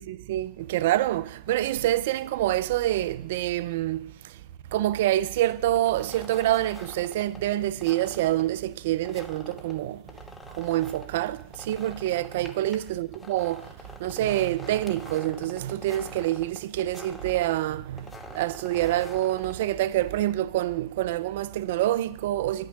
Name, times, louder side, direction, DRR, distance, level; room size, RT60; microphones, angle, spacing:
voice 1, 0.0-4.4 4.7-10.1 10.5-22.7, right 14 dB, 75° right, 0.3 m, -27 dB
sound 1, 5.7-20.1, left 2 dB, 15° left, 1.4 m, -46 dB
10.5 x 5.9 x 6.3 m
hypercardioid pair, 85°, 0 cm